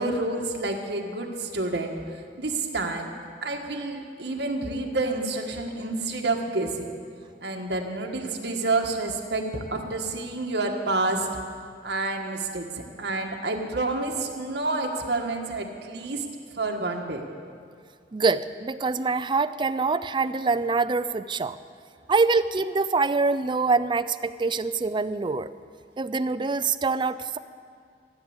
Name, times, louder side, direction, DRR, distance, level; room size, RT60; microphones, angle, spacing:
voice 1, 0.0-3.1 3.4-6.9 7.4-11.3 11.8-12.7 13.0-16.2 16.5-17.2, right 2 dB, 65° right, 1 dB, 1.7 m, -29 dB
voice 2, 18.1-21.6 22.1-25.5 26.0-27.4, right 4 dB, 25° right, 12 dB, 0.4 m, -25 dB
15.0 x 9.5 x 8.1 m, 2.2 s
head